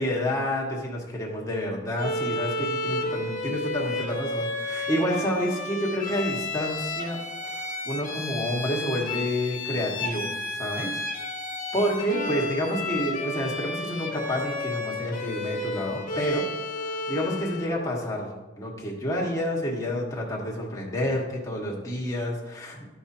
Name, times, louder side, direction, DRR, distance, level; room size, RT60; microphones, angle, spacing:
voice 1, 0.0-7.2 7.4-11.0 11.7-16.4 17.1-22.8, equal, 15° left, -3 dB, 1.6 m, -29 dB
Bowed string instrument, 2.0-17.8, left 2 dB, 40° left, 1.2 m, -32 dB
13.5 x 5.7 x 2.8 m, 1.1 s
head